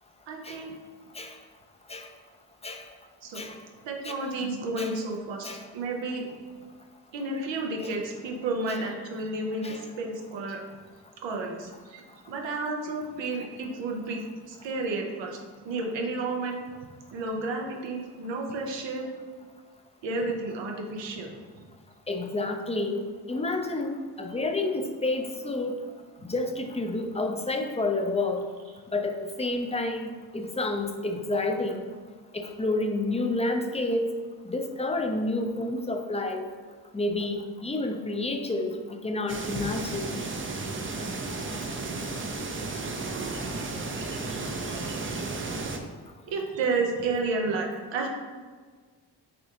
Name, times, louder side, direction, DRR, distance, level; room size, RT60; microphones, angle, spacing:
voice 1, 0.3-0.7 3.2-3.5 3.8-6.3 7.1-10.6 11.2-12.0 12.3-14.2 14.5-15.4 15.6-16.6 17.1-19.1 20.0-21.3 46.3-48.1, right 3 dB, 75° right, 1 dB, 0.8 m, -31 dB
voice 2, 22.1-25.8 26.3-28.4 28.9-31.9 32.3-34.1 34.5-36.4 36.9-40.2, left 2 dB, 15° left, 4 dB, 0.6 m, -29 dB
sound 1, 39.3-45.8, right 3 dB, 30° right, 0.6 m, -33 dB
6.2 x 2.3 x 2.9 m, 1.5 s
supercardioid pair, 45°, 44 cm